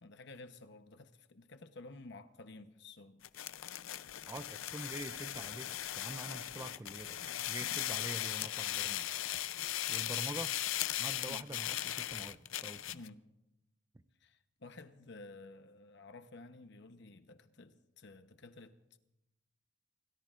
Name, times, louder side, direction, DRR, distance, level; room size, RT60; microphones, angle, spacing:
voice 1, 0.0-3.2 7.2-7.8 9.6-10.2 11.3-11.5 12.9-13.3 14.2-19.0, left 2 dB, 60° left, 0.9 m, -53 dB
sound 1, 3.2-13.1, left 13 dB, 80° left, 0.5 m, -38 dB
voice 2, 4.3-7.2 7.5-9.1 9.9-10.5 11.0-13.0 13.9-14.0, right 2 dB, 15° right, 0.5 m, -45 dB
28.0 x 18.0 x 2.5 m
head